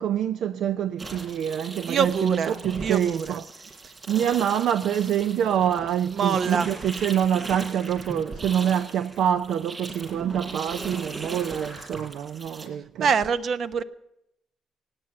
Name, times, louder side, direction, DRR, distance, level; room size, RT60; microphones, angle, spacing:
voice 1, 0.0-3.4 4.1-13.1, right 9 dB, 75° right, 0.5 m, -26 dB
sound 1, 1.0-12.7, right 3 dB, 30° right, 6.8 m, -39 dB
voice 2, 1.9-3.4 6.1-6.7 13.0-13.8, right 6 dB, 60° right, 0.9 m, -25 dB
17.0 x 9.8 x 8.6 m
cardioid pair, 90°, 0 cm